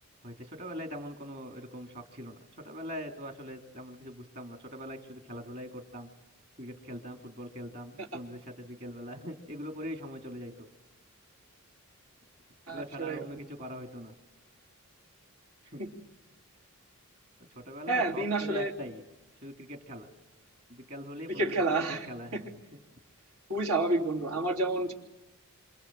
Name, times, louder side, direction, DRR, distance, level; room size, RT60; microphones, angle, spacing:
voice 1, 0.2-2.4 2.6-6.1 6.6-10.7 12.7-14.1 15.6-15.8 17.5-19.0 19.4-20.1 20.7-21.5 21.9-22.8, equal, 45° right, 4 dB, 3.2 m, -42 dB
voice 2, 12.7-13.2 15.8-15.9 17.9-18.7 21.3-22.1 22.3-22.4 23.5-24.9, right 2 dB, 85° right, 0 dB, 3.4 m, -29 dB
27.5 x 27.5 x 7.7 m, 1.1 s
head